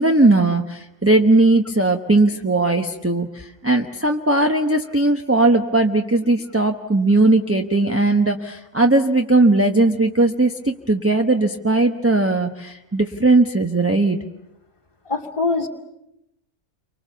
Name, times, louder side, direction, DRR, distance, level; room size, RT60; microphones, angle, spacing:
voice 1, 0.0-14.2, right 2 dB, 10° right, 4 dB, 1.0 m, -18 dB
voice 2, 15.1-15.7, left 3 dB, 25° left, 0 dB, 2.6 m, -23 dB
30.0 x 25.0 x 7.0 m, 0.85 s
omnidirectional pair, 1.4 m